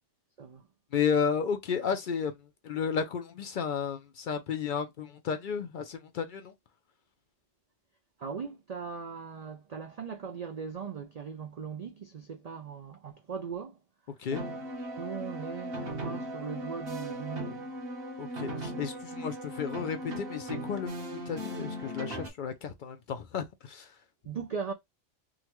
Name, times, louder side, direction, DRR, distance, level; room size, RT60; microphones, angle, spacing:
voice 1, 0.9-2.3 2.6-6.5 14.2-14.4 18.2-23.9, left 6 dB, 60° left, 0.5 m, -33 dB
voice 2, 8.2-13.8 14.8-17.7 24.2-24.7, right 6 dB, 70° right, 0.3 m, -39 dB
sound 1, 14.3-22.3, right 1 dB, 50° right, 1.2 m, -38 dB
3.7 x 2.2 x 2.9 m
omnidirectional pair, 1.3 m